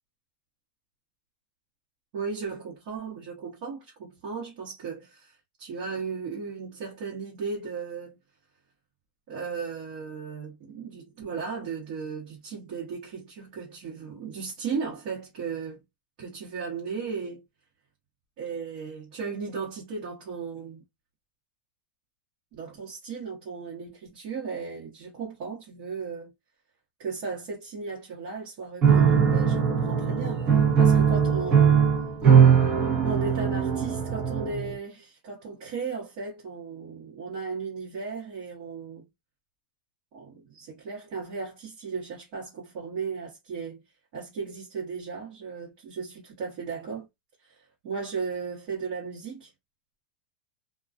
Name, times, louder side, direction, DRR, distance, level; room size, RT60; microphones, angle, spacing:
voice 1, 2.1-8.2 9.3-15.8 16.2-17.4 18.4-20.8 22.5-26.3 27.0-30.4 30.8-31.8 33.0-39.0 40.1-43.8 44.1-47.1 47.4-49.5, right 5 dB, 45° right, 1.1 m, -36 dB
Piano, 28.8-34.7, right 7 dB, 25° right, 0.7 m, -20 dB
2.3 x 2.2 x 2.5 m
supercardioid pair, 170°, 5 cm